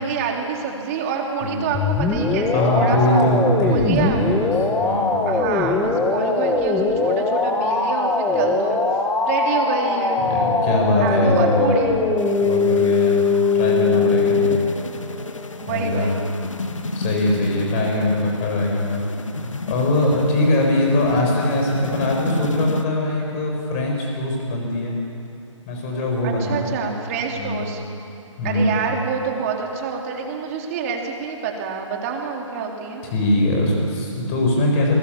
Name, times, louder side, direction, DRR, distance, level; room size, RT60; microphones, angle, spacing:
voice 1, 0.0-3.3 3.7-4.3 5.3-8.8 9.3-10.3 11.0-12.0 15.6-16.2 26.2-27.8 28.4-33.0, right 6 dB, 30° right, 1 dB, 3.5 m, -27 dB
sound 1, 1.7-14.6, left 4 dB, 5° left, 1.6 m, -21 dB
voice 2, 2.5-4.5 4.8-5.2 10.2-11.7 12.4-13.2 13.5-14.6 15.7-16.1 16.9-19.0 19.7-24.9 25.7-26.9 27.4-27.6 28.4-28.7 33.1-34.9, left 1 dB, 25° left, 0 dB, 7.3 m, -21 dB
sound 2, 12.2-22.8, left 3 dB, 70° left, 1.8 m, -32 dB
28.5 x 22.5 x 7.3 m, 2.6 s
figure-of-eight pair, 140°, 17 cm